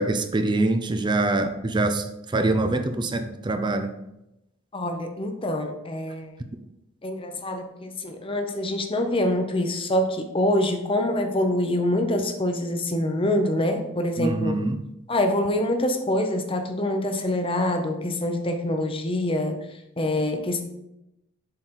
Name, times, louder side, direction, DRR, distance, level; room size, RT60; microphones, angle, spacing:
voice 1, 0.0-3.9 14.2-14.8, right 2 dB, 20° right, 8 dB, 0.5 m, -24 dB
voice 2, 4.7-6.3 7.0-14.6 15.1-19.6 20.0-20.6, left 1 dB, 25° left, 5 dB, 0.8 m, -25 dB
7.6 x 4.1 x 4.4 m, 0.88 s
head